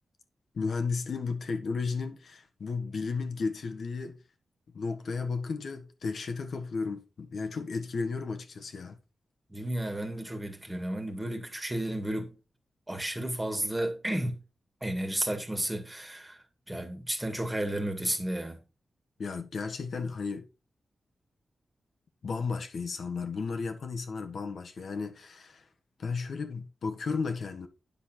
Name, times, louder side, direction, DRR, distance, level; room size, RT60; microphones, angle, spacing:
voice 1, 0.5-4.2 4.7-9.0 19.2-20.4 22.2-25.7 26.0-27.7, left 4 dB, 55° left, 1.4 m, -34 dB
voice 2, 9.5-12.3 12.9-14.4 14.8-18.6, right 1 dB, 10° right, 2.0 m, -32 dB
10.0 x 6.8 x 4.4 m
wide cardioid pair, 165°, 0 cm